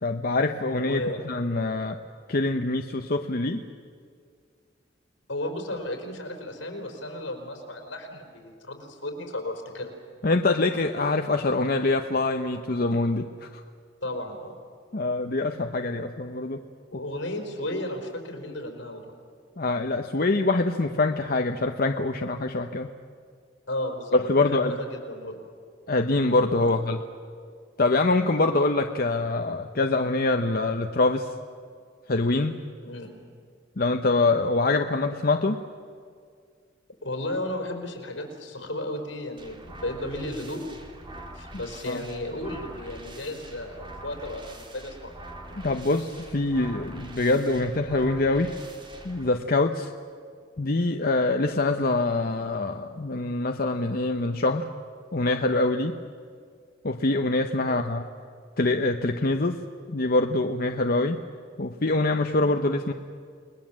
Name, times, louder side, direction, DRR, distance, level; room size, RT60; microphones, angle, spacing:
voice 1, 0.0-2.0 2.3-3.6 10.2-13.6 14.9-16.6 19.6-22.9 24.1-24.8 25.9-27.0 27.8-31.3 32.1-32.5 33.8-35.6 41.9-42.0 45.6-48.5 49.0-49.9 50.6-54.7 55.1-56.0 56.8-58.0 58.6-59.6 59.9-61.2 61.6-62.9, left 2 dB, 50° left, 5 dB, 0.9 m, -24 dB
voice 2, 0.7-1.2 5.3-9.9 14.0-14.5 16.9-19.0 23.7-25.4 26.6-26.8 32.8-33.2 37.0-40.6 41.3-45.1 57.6-57.8, left 1 dB, 80° left, 3 dB, 4.6 m, -34 dB
sound 1, 39.4-49.3, right 1 dB, 25° right, 2.4 m, -44 dB
29.5 x 20.5 x 7.5 m, 2.1 s
head